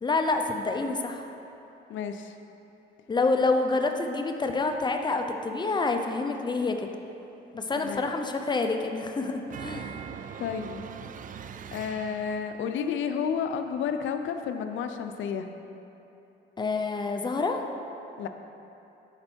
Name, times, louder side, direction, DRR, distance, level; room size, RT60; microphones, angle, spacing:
voice 1, 0.0-1.3 3.1-6.9 7.5-10.0 16.6-17.6, left 3 dB, 20° left, 5 dB, 0.6 m, -27 dB
voice 2, 1.9-2.3 7.7-8.1 10.4-10.8 11.7-15.5 18.2-18.3, left 7 dB, 75° left, 7 dB, 0.6 m, -31 dB
sound 1, 9.5-12.7, right 7 dB, 45° right, 0.4 m, -41 dB
11.0 x 4.3 x 4.5 m, 2.9 s
cardioid pair, 90°, 20 cm